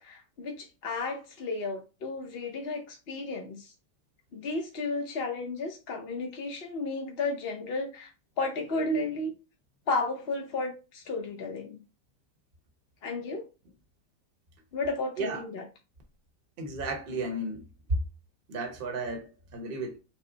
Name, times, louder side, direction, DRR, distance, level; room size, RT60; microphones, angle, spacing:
voice 1, 0.0-3.7 4.3-8.1 8.4-9.3 9.9-11.8 13.0-13.5 14.7-15.6, left 3 dB, 50° left, 0.8 m, -33 dB
voice 2, 16.6-18.0 18.5-20.0, right 2 dB, 40° right, 1.0 m, -33 dB
6.1 x 2.0 x 3.9 m
omnidirectional pair, 1.8 m